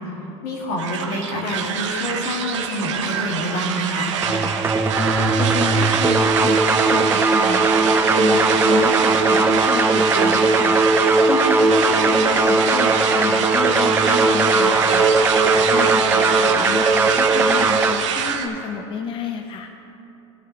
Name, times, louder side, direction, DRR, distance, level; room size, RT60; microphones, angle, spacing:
voice 1, 0.4-4.1, equal, 70° left, -2 dB, 2.2 m, -27 dB
sound 1, 0.8-18.5, right 7 dB, 90° right, 0.8 m, -24 dB
sound 2, 4.2-17.9, right 3 dB, 15° right, 0.4 m, -18 dB
voice 2, 5.0-7.7 8.1-10.8 11.3-19.7, left 5 dB, 35° left, 5 dB, 0.6 m, -29 dB
12.5 x 11.0 x 3.2 m, 2.9 s
supercardioid pair, 100°, 15 cm